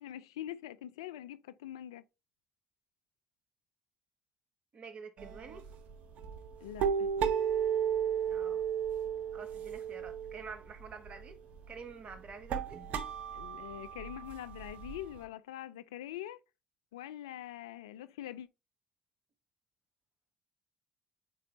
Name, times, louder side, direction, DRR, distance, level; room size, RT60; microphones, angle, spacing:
voice 1, 0.0-2.0 6.6-7.1 13.3-16.4 16.9-18.5, left 12 dB, 85° left, 0.3 m, -44 dB
voice 2, 4.7-5.7 8.3-8.6 9.3-11.4 11.7-12.8, right 5 dB, 45° right, 1.6 m, -48 dB
sound 1, 5.2-15.2, right 8 dB, 65° right, 0.9 m, -35 dB
8.5 x 4.3 x 2.6 m
hypercardioid pair, 55°, 3 cm